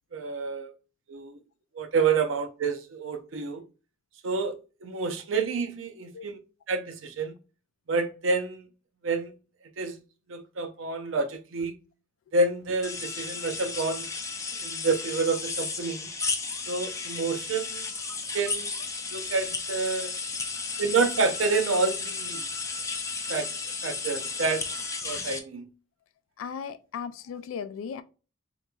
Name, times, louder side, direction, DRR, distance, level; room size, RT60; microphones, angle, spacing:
voice 1, 0.1-0.7 1.1-1.4 1.8-3.6 4.2-4.5 4.8-6.4 6.7-7.3 7.9-8.7 9.0-9.3 9.8-10.0 10.3-11.7 12.3-14.1 14.6-16.1 16.7-17.9 18.3-18.7 19.1-20.1 20.8-22.4 23.3-23.5 23.8-24.6 25.0-25.7, right 4 dB, 75° right, 0.5 m, -28 dB
sound 1, 12.8-25.4, left 4 dB, 15° left, 0.4 m, -34 dB
voice 2, 26.4-28.0, left 7 dB, 85° left, 0.3 m, -37 dB
3.8 x 2.9 x 2.2 m
head